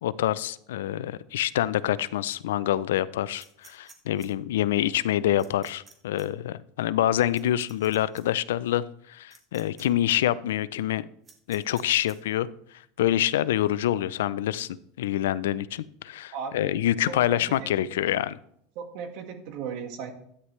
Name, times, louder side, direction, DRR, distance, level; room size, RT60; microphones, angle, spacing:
voice 1, 0.0-11.1 11.5-12.5 13.0-18.4, left 12 dB, 85° left, 18 dB, 0.4 m, -26 dB
sound 1, 3.4-4.3 5.4-5.9 6.2-6.3 7.3-8.2 9.3-9.8 10.1-10.2 11.2-12.1, right 4 dB, 25° right, 1.9 m, -52 dB
voice 2, 16.3-16.7 17.1-18.0 18.7-20.1, right 6 dB, 60° right, 6 dB, 1.6 m, -37 dB
12.5 x 9.7 x 3.2 m, 0.68 s
supercardioid pair, 105°, 0 cm